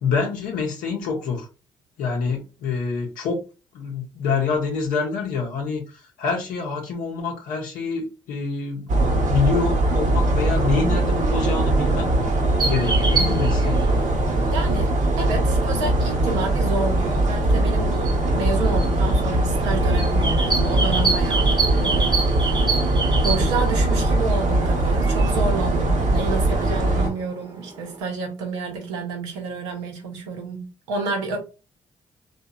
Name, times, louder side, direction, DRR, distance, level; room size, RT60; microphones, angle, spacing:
voice 1, 0.0-1.5 2.0-3.4 3.7-8.9 9.3-12.1 12.6-14.0, left 5 dB, 75° left, 0.6 m, -26 dB
sound 1, 8.9-27.1, right 1 dB, 60° right, 0.8 m, -21 dB
sound 2, 12.6-28.0, right 4 dB, 30° right, 0.7 m, -30 dB
voice 2, 14.5-22.2 22.4-22.6 23.2-31.4, right 4 dB, 90° right, 0.6 m, -29 dB
2.8 x 2.2 x 2.3 m
hypercardioid pair, 45°, 14 cm